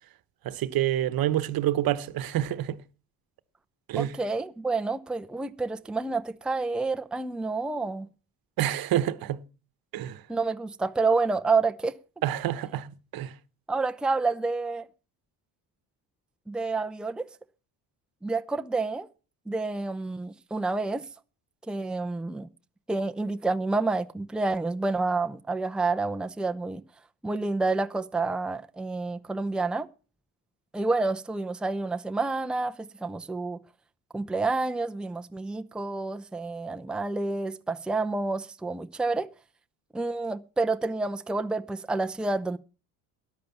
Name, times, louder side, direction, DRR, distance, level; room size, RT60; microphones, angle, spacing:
voice 1, 0.4-2.8 3.9-4.1 8.6-9.4 9.9-10.2 12.2-13.3, right 12 dB, 60° right, 1.1 m, -27 dB
voice 2, 4.0-8.1 10.3-11.9 13.7-14.9 16.5-17.3 18.2-19.1 19.5-21.0 21.7-22.5 22.9-26.8 27.2-29.9 30.7-33.6 34.1-39.3 39.9-42.6, right 3 dB, ahead, 0.6 m, -29 dB
13.5 x 10.5 x 5.8 m
supercardioid pair, 90°, 40 cm